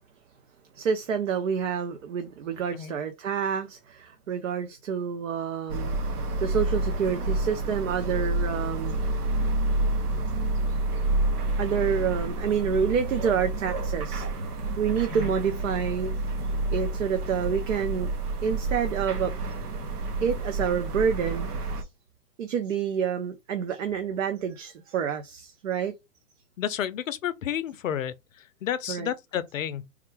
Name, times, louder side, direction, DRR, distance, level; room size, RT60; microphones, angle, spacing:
voice 1, 0.7-6.0 6.4-9.0 11.6-16.1 16.7-18.1 18.4-19.3 20.2-21.9 22.4-25.9 28.9-29.1, right 7 dB, 55° right, 0.7 m, -28 dB
sound 1, 5.7-21.8, right 2 dB, 70° right, 1.1 m, -29 dB
voice 2, 26.6-28.1 28.6-29.9, left 10 dB, 55° left, 0.6 m, -31 dB
3.7 x 2.2 x 4.5 m
hypercardioid pair, 155°, 47 cm